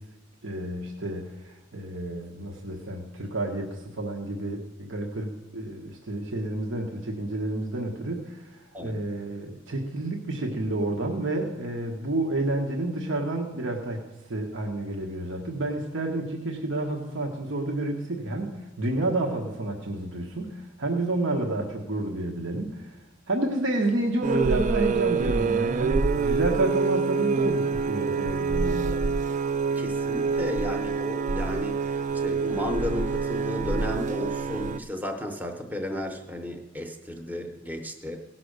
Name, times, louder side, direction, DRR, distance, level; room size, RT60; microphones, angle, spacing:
voice 1, 0.4-14.0 14.3-23.0 23.3-29.0, right 2 dB, 75° right, 1 dB, 1.2 m, -30 dB
sound 1, 24.2-34.8, right 4 dB, 40° right, 0.3 m, -26 dB
voice 2, 29.8-38.2, left 1 dB, 10° right, 4 dB, 0.8 m, -33 dB
16.5 x 5.9 x 6.4 m, 1.0 s
head